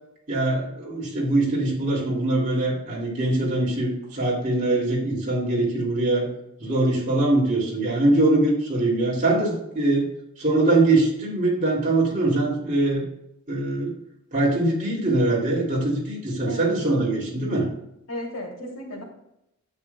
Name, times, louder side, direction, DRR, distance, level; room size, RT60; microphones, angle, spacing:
voice 1, 0.3-6.3 6.6-10.1 10.4-13.0 13.5-13.9 14.3-17.7, right 2 dB, 35° right, -4 dB, 2.5 m, -22 dB
voice 2, 18.1-19.0, left 1 dB, 85° left, -3 dB, 2.8 m, -34 dB
9.6 x 7.3 x 2.3 m, 0.83 s
head